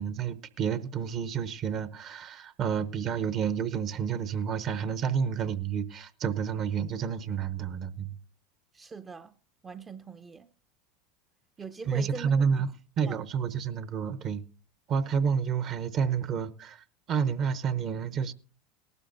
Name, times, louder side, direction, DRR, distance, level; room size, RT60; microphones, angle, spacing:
voice 1, 0.0-8.2 11.8-12.7 13.0-14.4 14.9-18.3, right 7 dB, 45° right, 0.8 m, -30 dB
voice 2, 8.7-9.4 9.6-10.5 11.6-12.3 13.0-13.2, right 5 dB, 20° right, 0.5 m, -42 dB
18.5 x 12.0 x 2.6 m
hypercardioid pair, 90°, 0 cm